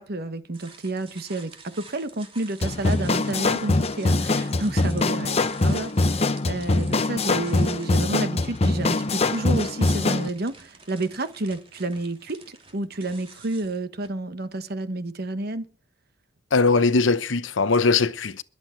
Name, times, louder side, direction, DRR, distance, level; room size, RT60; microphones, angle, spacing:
voice 1, 0.0-15.7, right 2 dB, 55° right, 1.2 m, -30 dB
sound 1, 0.5-14.1, right 4 dB, 30° right, 2.9 m, -49 dB
sound 2, 2.6-10.3, left 2 dB, 35° left, 0.7 m, -23 dB
voice 2, 16.5-18.4, left 4 dB, 80° left, 0.9 m, -20 dB
22.0 x 8.0 x 4.6 m
head